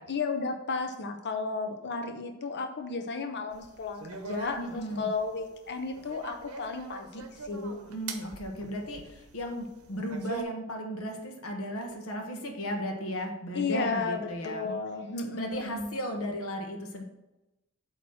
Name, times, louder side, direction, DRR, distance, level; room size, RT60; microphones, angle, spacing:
voice 1, 0.1-7.8 13.5-15.9, left 4 dB, 50° left, 5 dB, 0.6 m, -33 dB
sound 1, 3.5-10.4, right 5 dB, 75° right, 1.0 m, -43 dB
voice 2, 4.6-5.1 7.9-14.7 15.3-17.0, equal, 65° left, 2 dB, 1.0 m, -35 dB
8.4 x 3.0 x 6.2 m, 0.98 s
head